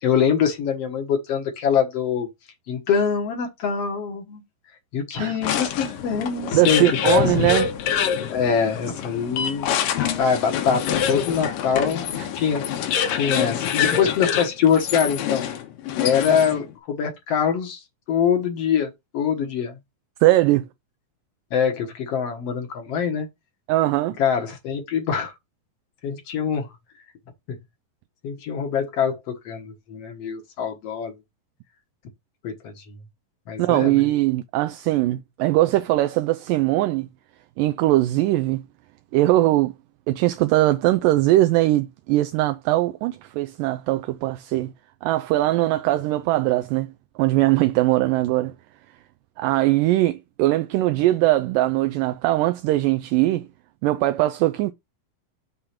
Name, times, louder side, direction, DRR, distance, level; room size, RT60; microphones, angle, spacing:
voice 1, 0.0-2.3 2.7-4.4 4.9-7.5 8.3-9.7 10.2-12.6 13.1-15.5 16.0-17.8 18.1-19.8 21.5-23.3 24.2-25.3 26.0-26.7 28.2-31.2 32.4-32.8 33.5-34.0, left 7 dB, 60° left, 1.8 m, -24 dB
sound 1, 5.4-16.7, left 8 dB, 80° left, 2.6 m, -25 dB
voice 2, 6.5-7.7 12.2-12.3 13.2-13.3 20.2-20.7 23.7-24.2 33.6-37.1 37.6-38.6 39.1-39.7 40.1-44.7 45.0-46.9 47.2-48.5 49.4-53.5 53.8-54.7, right 16 dB, 80° right, 2.1 m, -20 dB
6.8 x 3.6 x 5.8 m
omnidirectional pair, 4.0 m